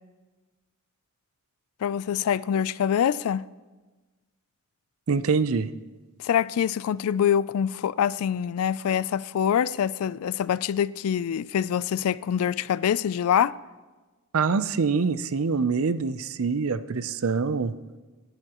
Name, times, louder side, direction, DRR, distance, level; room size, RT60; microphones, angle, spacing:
voice 1, 1.8-3.4 6.2-13.6, left 8 dB, 75° left, 0.3 m, -25 dB
voice 2, 5.1-5.7 14.3-17.7, right 5 dB, 70° right, 0.5 m, -25 dB
26.0 x 11.0 x 3.0 m
head